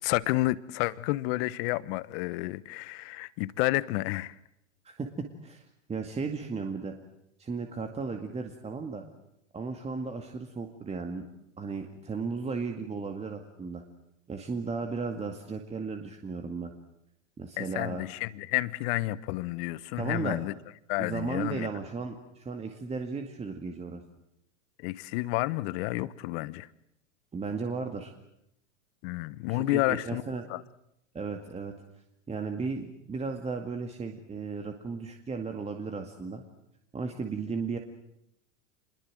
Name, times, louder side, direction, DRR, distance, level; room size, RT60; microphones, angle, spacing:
voice 1, 0.0-4.4 17.6-20.5 20.9-21.7 24.8-26.7 29.0-30.2 30.5-30.6, left 19 dB, 50° left, 18 dB, 1.2 m, -30 dB
voice 2, 4.8-5.6 5.9-6.9 7.4-9.0 9.5-11.2 11.6-13.8 14.3-16.7 17.4-18.0 20.0-20.4 21.0-24.0 27.3-28.1 29.5-30.5 31.1-31.7 32.3-36.4 36.9-37.8, right 4 dB, 15° right, 4 dB, 2.1 m, -35 dB
26.5 x 21.5 x 7.7 m, 0.79 s
hypercardioid pair, 115°, 39 cm